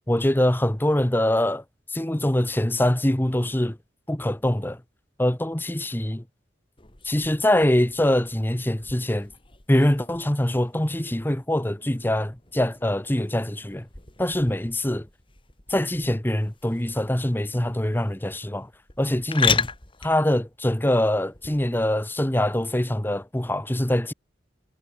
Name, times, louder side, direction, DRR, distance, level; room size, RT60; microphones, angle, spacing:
voice 1, 0.1-1.6 1.9-3.8 4.1-4.8 5.2-6.2 7.0-9.3 9.7-13.9 14.2-15.1 15.7-18.7 19.0-19.7 20.0-24.1, left 1 dB, 10° left, 0.9 m, -23 dB
sound 1, 6.8-21.8, left 6 dB, 30° left, 2.8 m, -35 dB
head